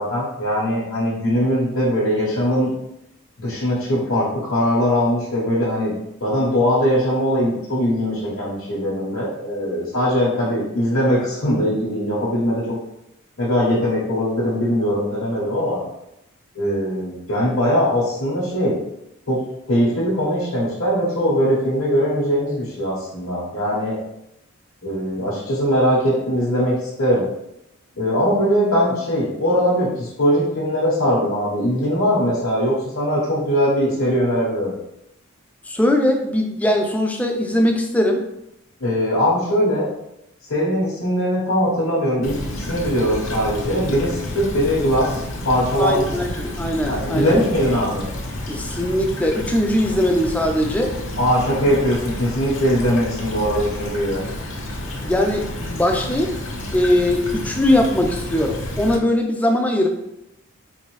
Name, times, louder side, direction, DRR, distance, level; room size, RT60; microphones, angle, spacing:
voice 1, 0.0-2.7 3.4-5.9 6.2-12.8 13.4-15.8 16.5-18.8 19.3-19.4 19.7-24.0 24.8-27.2 27.9-34.7 38.8-39.9 40.5-46.0 46.9-48.1 51.2-54.2, equal, 80° left, -9 dB, 1.0 m, -21 dB
voice 2, 35.7-38.2 45.8-47.4 48.5-51.0 55.0-56.4 56.7-59.9, left 1 dB, 5° left, 2 dB, 0.3 m, -20 dB
Stream / Trickle dribble, 42.2-59.0, left 1 dB, 60° left, 0.7 m, -30 dB
4.0 x 2.6 x 3.1 m, 0.84 s
head